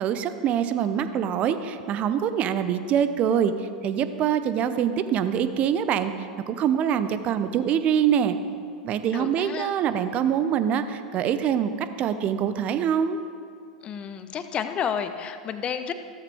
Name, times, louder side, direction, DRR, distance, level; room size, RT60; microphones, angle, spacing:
voice 1, 0.0-8.3 8.8-13.2, right 8 dB, 35° right, 11 dB, 0.8 m, -24 dB
voice 2, 9.1-9.7 13.8-15.9, left 7 dB, 30° left, 9 dB, 0.8 m, -31 dB
15.0 x 13.5 x 3.5 m, 2.4 s
figure-of-eight pair, 90°, 4 cm